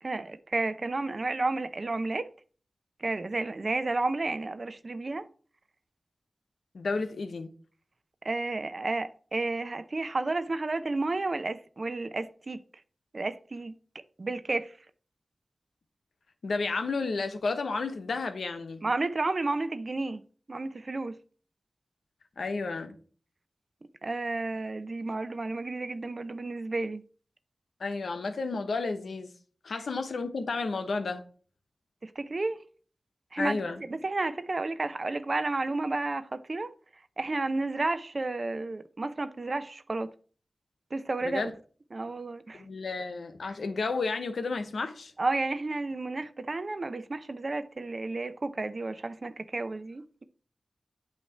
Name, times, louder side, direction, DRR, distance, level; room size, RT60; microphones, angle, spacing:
voice 1, 0.0-2.3 3.0-5.3 8.2-12.6 13.1-13.8 14.2-14.7 18.8-20.2 20.5-21.2 24.0-27.0 32.0-32.6 33.3-33.6 33.9-36.7 37.2-40.1 40.9-41.5 41.9-42.6 45.2-50.2, right 2 dB, 55° right, 0.6 m, -31 dB
voice 2, 6.7-7.5 16.4-18.8 22.4-23.0 27.8-29.3 29.6-31.2 33.4-33.8 41.2-41.5 42.5-45.1, left 3 dB, 90° left, 0.9 m, -32 dB
8.6 x 2.9 x 5.9 m
cardioid pair, 40°, 0 cm